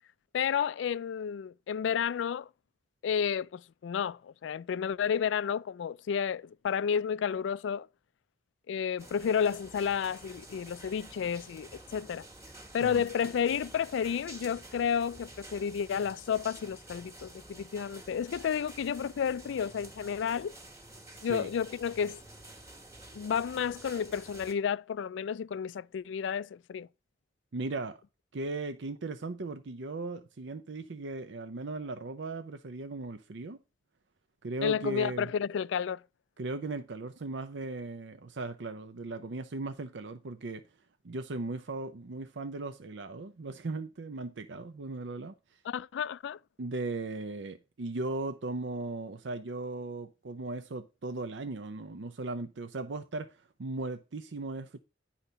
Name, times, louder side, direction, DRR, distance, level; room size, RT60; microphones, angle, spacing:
voice 1, 0.3-2.5 3.0-7.9 8.7-12.3 12.7-20.5 21.2-22.2 23.1-26.9 34.6-36.0 45.7-46.4, left 7 dB, 85° left, 0.3 m, -31 dB
sound 1, 9.0-24.5, right 1 dB, 15° right, 1.5 m, -50 dB
voice 2, 21.1-21.5 27.5-28.0 28.3-33.6 34.4-35.3 36.4-40.6 41.0-45.6 46.6-54.8, right 3 dB, 75° right, 0.6 m, -37 dB
10.0 x 3.9 x 5.6 m
head